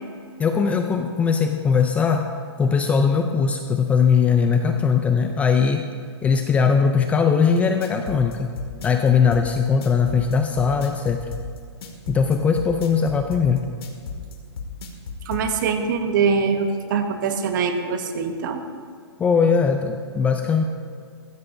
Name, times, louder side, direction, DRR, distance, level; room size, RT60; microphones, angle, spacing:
voice 1, 0.4-2.3 2.6-5.8 6.2-8.5 8.8-11.2 12.1-13.6 19.2-20.6, left 6 dB, 10° left, 5 dB, 0.4 m, -20 dB
sound 1, 7.6-15.5, left 4 dB, 60° left, 2.2 m, -34 dB
voice 2, 15.3-18.6, right 5 dB, 45° right, 6 dB, 1.4 m, -23 dB
20.5 x 15.5 x 2.7 m, 2.2 s
hypercardioid pair, 150°, 15 cm